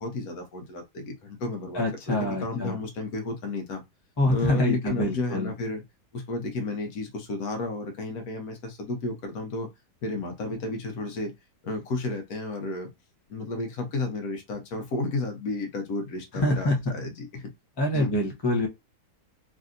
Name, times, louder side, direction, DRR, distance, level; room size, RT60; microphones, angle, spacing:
voice 1, 0.0-3.8 4.3-5.8 6.1-9.7 10.0-11.3 11.6-12.9 13.3-17.5 17.9-18.1, left 3 dB, 70° left, 1.3 m, -32 dB
voice 2, 1.7-2.8 4.2-5.5 16.4-16.8 17.8-18.7, left 1 dB, 25° left, 0.6 m, -25 dB
3.2 x 2.7 x 2.5 m
omnidirectional pair, 1.7 m